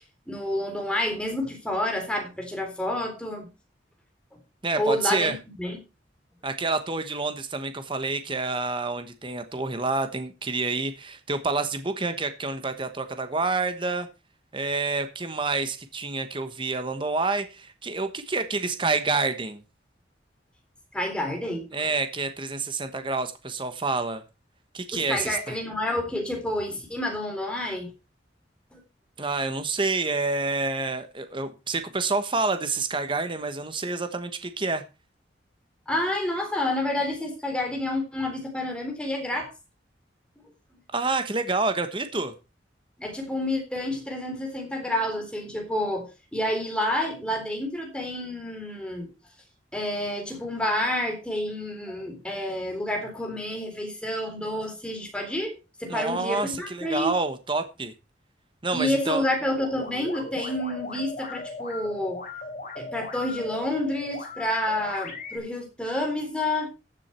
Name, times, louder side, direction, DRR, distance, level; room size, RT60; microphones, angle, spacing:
voice 1, 0.3-3.5 4.8-5.8 20.9-21.9 24.9-27.9 28.7-28.8 35.9-39.5 43.0-49.1 49.7-55.5 55.8-57.1 58.7-62.2 62.8-66.7, left 1 dB, 5° left, 2 dB, 3.7 m, -29 dB
voice 2, 4.6-5.4 6.4-14.1 14.5-19.6 21.7-24.2 24.7-25.6 29.2-34.8 40.9-42.3 55.9-57.9 58.6-59.2, right 3 dB, 25° right, 9 dB, 1.2 m, -28 dB
sound 1, 59.5-65.4, left 3 dB, 45° left, 4.0 m, -38 dB
14.5 x 7.5 x 4.4 m, 0.30 s
head